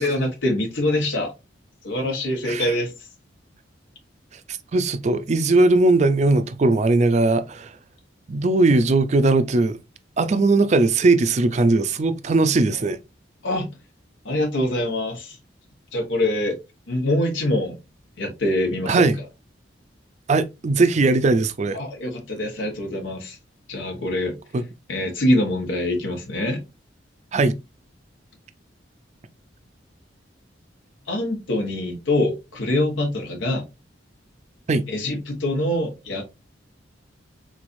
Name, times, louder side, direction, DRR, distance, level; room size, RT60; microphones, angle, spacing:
voice 1, 0.0-1.3 1.8-3.1 12.7-12.8 13.4-13.7 14.2-15.4 15.9-16.6 16.9-17.8 18.2-19.1 21.7-23.4 23.7-24.4 24.9-26.6 31.1-33.6 34.9-36.2, left 1 dB, 85° left, 1.0 m, -24 dB
voice 2, 4.7-7.7 8.3-9.8 10.2-13.0 18.9-19.2 20.3-21.8 24.5-24.6 27.3-27.6 34.7-34.8, right 2 dB, 35° right, 0.4 m, -19 dB
3.9 x 3.1 x 2.5 m
head